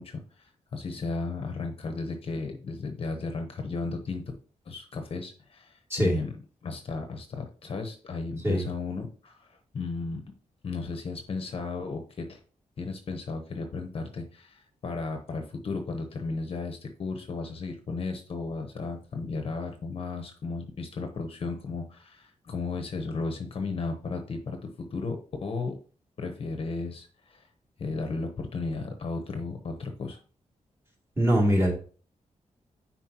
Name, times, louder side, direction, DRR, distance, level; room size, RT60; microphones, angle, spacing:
voice 1, 0.0-4.2 4.7-6.3 6.6-10.2 10.6-12.4 12.8-25.7 26.2-27.5 27.8-30.2, left 3 dB, 45° left, 5 dB, 0.8 m, -34 dB
voice 2, 31.2-31.7, equal, 20° right, -4 dB, 2.5 m, -22 dB
9.7 x 4.2 x 2.9 m, 0.40 s
wide cardioid pair, 175°, 13 cm